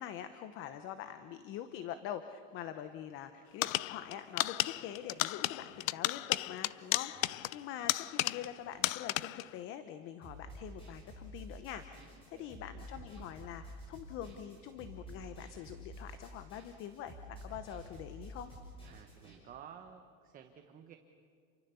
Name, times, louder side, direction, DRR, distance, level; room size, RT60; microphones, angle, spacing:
voice 1, 0.0-18.5, left 10 dB, 35° left, 10 dB, 0.9 m, -44 dB
sound 1, 3.6-8.6 8.8-9.5, left 17 dB, 85° left, 0.7 m, -34 dB
sound 2, 10.2-19.4, equal, 15° left, 6.6 m, -50 dB
voice 2, 12.0-12.6 18.8-21.0, right 8 dB, 20° right, 5 dB, 1.0 m, -54 dB
29.0 x 24.0 x 6.9 m, 2.4 s
supercardioid pair, 165°, 39 cm